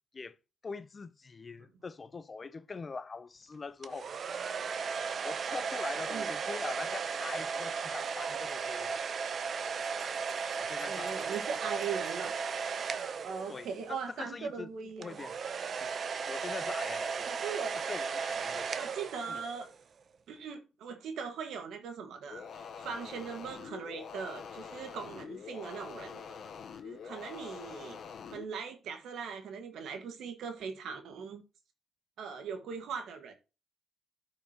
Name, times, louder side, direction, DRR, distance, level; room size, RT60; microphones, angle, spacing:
voice 1, 0.6-4.1 5.2-9.0 10.5-11.3 13.5-14.7 15.0-15.4 15.8-15.9 16.3-17.3 17.7-18.8 19.3-19.4, left 4 dB, 35° left, 0.6 m, -43 dB
sound 1, 3.8-14.0 15.0-19.7, right 5 dB, 50° right, 0.8 m, -36 dB
Bell, 9.8-12.6 12.9-13.1 13.4-13.5 13.8-13.9 14.2-14.3, left 1 dB, 10° left, 3.4 m, -61 dB
voice 2, 10.9-12.3 13.2-15.2 17.3-17.8 18.8-19.7 20.3-26.5 26.8-28.0 28.3-31.4 32.2-33.3, right 6 dB, 75° right, 1.7 m, -40 dB
sound 2, 22.3-28.4, left 6 dB, 60° left, 1.0 m, -45 dB
13.0 x 5.8 x 3.0 m
cardioid pair, 90°, 0 cm